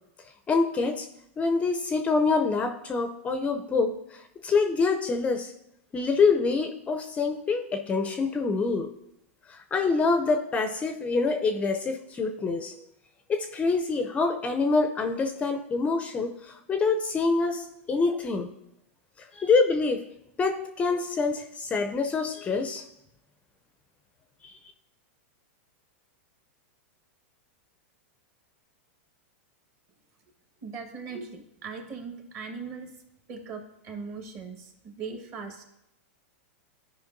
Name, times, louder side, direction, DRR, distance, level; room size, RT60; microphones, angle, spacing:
voice 1, 0.5-1.1 1.4-5.5 5.9-8.9 9.5-12.7 13.3-18.5 19.2-20.0 20.4-22.8 24.4-24.5, left 4 dB, 20° left, 6 dB, 0.5 m, -26 dB
voice 2, 30.6-32.9 33.3-35.7, right 5 dB, 35° right, 4 dB, 1.4 m, -39 dB
13.0 x 5.0 x 2.6 m, 0.83 s
hypercardioid pair, 130°, 7 cm